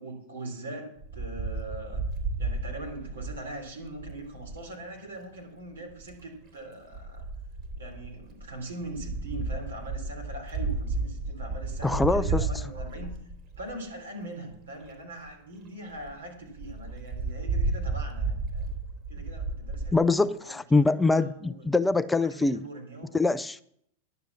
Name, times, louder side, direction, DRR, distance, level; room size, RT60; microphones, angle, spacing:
voice 1, 0.0-2.0 2.4-7.2 7.8-13.2 13.6-18.7 19.1-20.5 21.0-21.7 22.1-23.2, right 2 dB, 80° right, 3.4 m, -41 dB
Wind, 1.0-4.7 5.8-6.2 6.9-13.9 14.5-14.6 14.8-14.9 15.3-15.4 15.7-15.8 16.0-16.1 16.6-19.9, right 3 dB, 40° right, 3.0 m, -33 dB
voice 2, 11.8-12.5 19.9-22.6 23.1-23.6, left 3 dB, 10° left, 0.4 m, -24 dB
11.0 x 6.8 x 7.3 m
hypercardioid pair, 95°, 0 cm